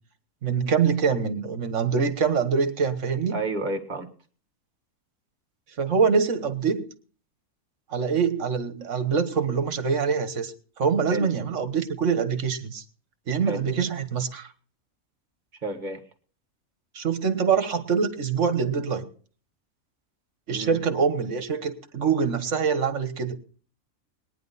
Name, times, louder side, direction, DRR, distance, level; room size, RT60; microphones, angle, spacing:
voice 1, 0.4-3.4 5.8-6.9 7.9-10.5 10.8-12.8 13.3-14.5 16.9-19.1 20.5-23.4, right 6 dB, 60° right, 10 dB, 1.6 m, -24 dB
voice 2, 3.3-4.1 11.1-11.3 13.5-13.6 15.6-16.0 20.5-20.8, right 2 dB, 35° right, 4 dB, 1.7 m, -30 dB
21.0 x 10.0 x 4.1 m, 0.43 s
omnidirectional pair, 1.5 m